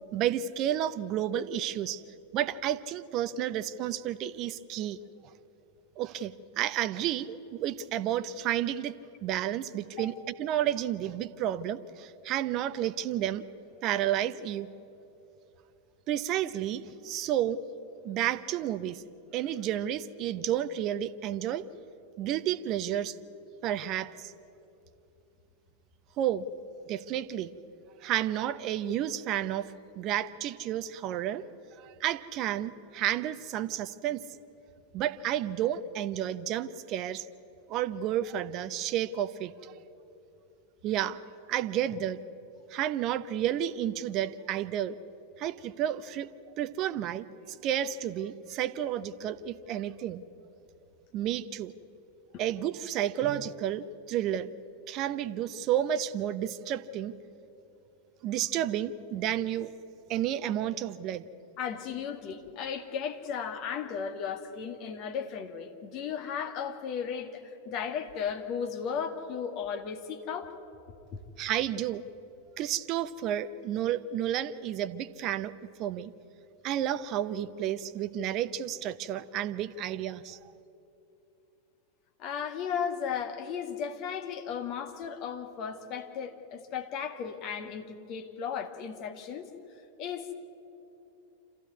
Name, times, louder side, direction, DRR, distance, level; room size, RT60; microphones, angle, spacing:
voice 1, 0.1-2.0 2.3-5.0 6.0-8.9 9.2-13.4 13.8-14.7 16.1-17.6 18.0-19.0 19.3-21.6 22.2-23.1 23.6-24.3 26.2-26.4 26.9-27.5 28.0-31.4 31.8-34.3 34.9-37.3 37.7-39.7 40.8-41.2 41.5-42.2 42.7-45.0 45.4-46.3 46.6-50.2 51.1-51.8 52.4-54.5 54.9-57.1 58.2-59.7 60.1-61.2 71.4-72.0 72.6-75.5 75.8-76.1 76.6-80.4, right 11 dB, 35° right, 15 dB, 0.8 m, -31 dB
voice 2, 61.6-70.5 82.2-89.5 90.0-90.3, left 7 dB, 40° left, 6 dB, 2.0 m, -35 dB
27.0 x 14.5 x 9.6 m, 2.9 s
figure-of-eight pair, 90°, 0 cm